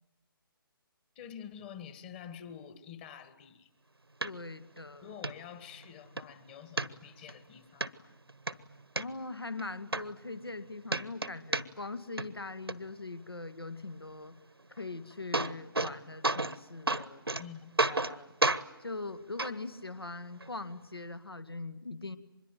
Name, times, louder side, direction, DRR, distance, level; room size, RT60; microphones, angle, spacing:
voice 1, 1.2-3.7 5.0-8.1 17.4-17.7, left 8 dB, 25° left, 12 dB, 1.7 m, -48 dB
voice 2, 4.2-5.1 9.0-14.4 14.7-17.2 17.8-18.3 18.8-22.2, left 3 dB, 85° left, 11 dB, 2.0 m, -41 dB
sound 1, 4.2-4.3 4.8-4.9 5.2-5.3 5.8-6.3 6.8-7.3 7.8-7.9 8.3-9.0 9.6-9.7 9.9-10.6 10.9-11.9 12.2-12.7 14.8-14.9 15.1-15.9 16.2-16.6 16.9-17.4 17.8-18.1 18.4-18.6 19.4-19.5 20.4-20.5, right 2 dB, 90° right, 1.1 m, -30 dB
25.0 x 22.0 x 9.4 m, 1.0 s
figure-of-eight pair, 145°, 12 cm